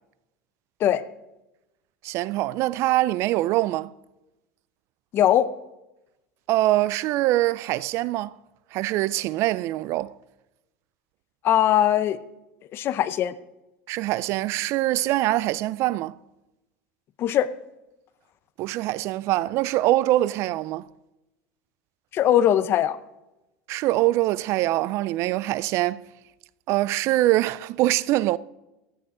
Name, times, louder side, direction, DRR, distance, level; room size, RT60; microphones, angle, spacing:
voice 1, 2.0-3.9 6.5-8.3 8.7-10.1 13.9-16.2 18.6-20.9 23.7-26.0 26.7-28.4, right 16 dB, 55° right, 0.4 m, -23 dB
voice 2, 5.1-5.5 11.4-12.2 12.7-13.4 17.2-17.5 22.1-23.0, left 11 dB, 45° left, 0.7 m, -20 dB
14.0 x 9.3 x 3.8 m
supercardioid pair, 120°, 6 cm